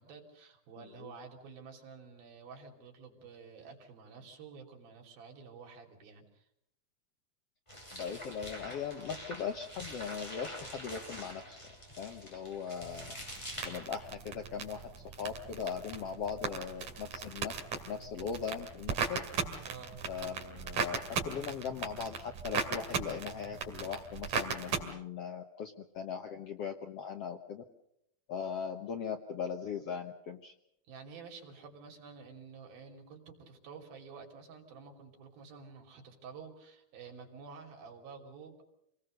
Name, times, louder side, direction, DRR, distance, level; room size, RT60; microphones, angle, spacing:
voice 1, 0.0-6.5 19.6-20.0 30.8-38.6, right 5 dB, 80° right, 2 dB, 4.9 m, -50 dB
voice 2, 0.8-1.1 7.9-11.6 12.0-13.1 13.6-17.5 17.9-19.2 20.1-27.6 28.3-30.5, left 7 dB, 65° left, 5 dB, 1.5 m, -39 dB
sound 1, 7.7-14.1, equal, 10° left, 6.0 m, -46 dB
sound 2, 12.8-24.8, right 6 dB, 60° right, 3.7 m, -38 dB
27.5 x 19.5 x 6.5 m, 0.77 s
omnidirectional pair, 4.1 m